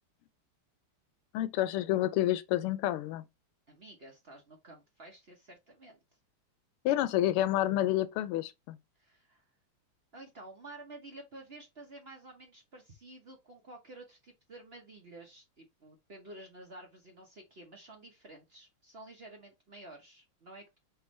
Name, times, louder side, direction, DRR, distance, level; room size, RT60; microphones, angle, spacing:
voice 1, 1.3-3.2 6.8-8.8, left 14 dB, 85° left, 1.5 m, -29 dB
voice 2, 3.7-6.0 9.0-9.4 10.1-20.8, right 2 dB, 50° right, 0.7 m, -51 dB
4.9 x 3.4 x 3.1 m
omnidirectional pair, 2.4 m